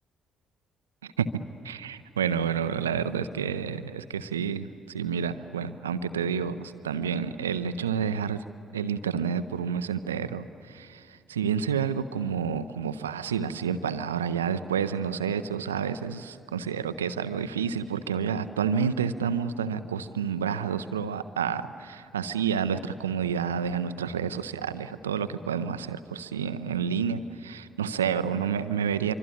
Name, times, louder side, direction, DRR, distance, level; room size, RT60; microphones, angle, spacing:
voice 1, 1.6-8.4 8.7-29.1, right 7 dB, 85° right, 12 dB, 0.6 m, -29 dB
26.0 x 24.5 x 9.2 m, 2.5 s
figure-of-eight pair, 45°, 0 cm